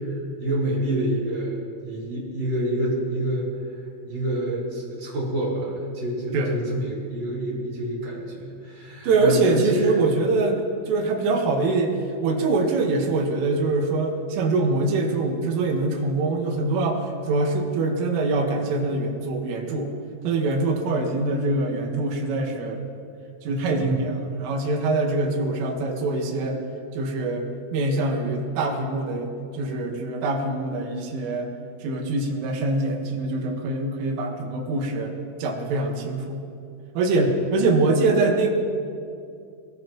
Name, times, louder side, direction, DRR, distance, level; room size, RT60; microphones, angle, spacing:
voice 1, 0.0-1.5 1.8-3.5 4.1-10.0 37.1-37.3, right 1 dB, 25° right, -6 dB, 5.1 m, -27 dB
voice 2, 9.0-12.0 12.2-17.0 17.3-19.9 20.2-22.8 23.4-26.6 26.9-27.5 27.7-31.5 31.8-35.1 35.4-36.4 37.0-38.5, right 3 dB, 75° right, 1 dB, 4.1 m, -24 dB
22.5 x 19.0 x 3.1 m, 2.4 s
omnidirectional pair, 5.9 m